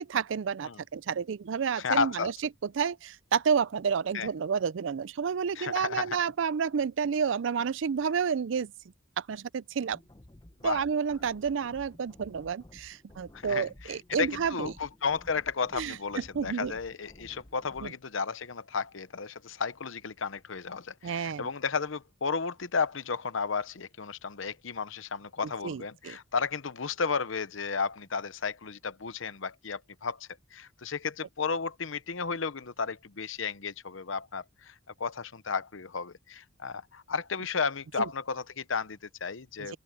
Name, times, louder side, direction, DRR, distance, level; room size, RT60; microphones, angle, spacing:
voice 1, 0.0-2.3 2.7-8.7 9.2-10.0 10.6-14.7 15.7-16.7 17.8-17.9 21.0-21.5 25.6-26.2 38.0-38.1, right 6 dB, 65° right, 0.4 m, -30 dB
voice 2, 1.8-2.3 4.1-4.3 5.6-6.2 10.6-10.8 13.3-39.8, left 5 dB, 70° left, 0.9 m, -33 dB
sound 1, 9.9-17.9, left 1 dB, 20° left, 0.7 m, -54 dB
open air
head